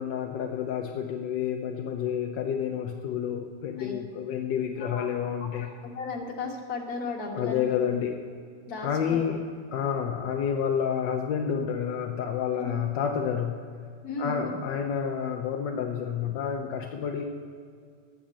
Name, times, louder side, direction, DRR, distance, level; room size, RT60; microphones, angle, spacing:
voice 1, 0.0-5.7 7.4-8.2 8.8-9.4 9.7-13.6 14.2-17.3, left 8 dB, 85° left, 3 dB, 1.4 m, -29 dB
voice 2, 4.8-5.1 5.4-7.7 8.7-9.2 12.6-12.8 14.0-14.6, left 3 dB, 60° left, 0 dB, 1.9 m, -35 dB
8.9 x 7.3 x 8.4 m, 2.1 s
omnidirectional pair, 1.9 m